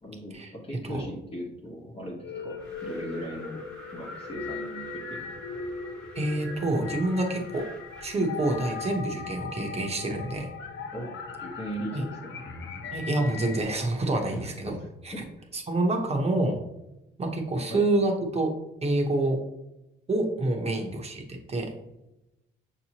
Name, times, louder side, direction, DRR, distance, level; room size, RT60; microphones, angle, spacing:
voice 1, 0.0-3.6 3.9-5.2 10.9-12.4 14.3-15.5 17.7-17.8 20.6-20.9, equal, 30° left, -3 dB, 1.1 m, -38 dB
sound 1, 2.2-13.6, left 4 dB, 75° left, 0.8 m, -39 dB
Wind, 2.6-9.0, left 1 dB, 5° left, 1.2 m, -46 dB
voice 2, 6.1-7.6 8.0-10.5 11.9-12.0 12.9-14.8 15.0-15.1 15.5-16.6 17.2-18.5 18.8-19.4 20.1-21.7, right 2 dB, 30° right, 3 dB, 0.9 m, -27 dB
6.1 x 2.9 x 2.9 m, 0.91 s
cardioid pair, 90°, 20 cm